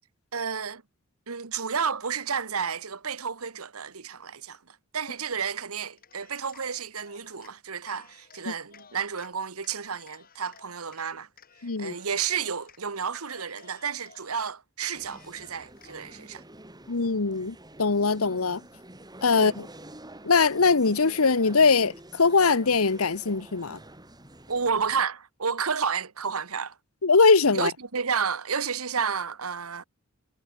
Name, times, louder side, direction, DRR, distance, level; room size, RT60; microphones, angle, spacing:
voice 1, 0.3-0.8 1.3-11.3 11.8-16.4 19.3-19.5 24.5-26.8 27.5-29.8, right 6 dB, 85° right, 1.4 m, -31 dB
Cheering, 6.0-7.5 7.9-9.3 9.6-11.0 11.4-12.8 13.1-14.5 14.9-16.3, left 6 dB, 45° left, 6.3 m, -55 dB
voice 2, 11.6-11.9 16.9-18.6 19.2-19.7 20.2-23.8 27.0-27.7, left 4 dB, 80° left, 1.1 m, -22 dB
sound 1, 14.9-25.0, right 1 dB, 20° right, 6.7 m, -48 dB
head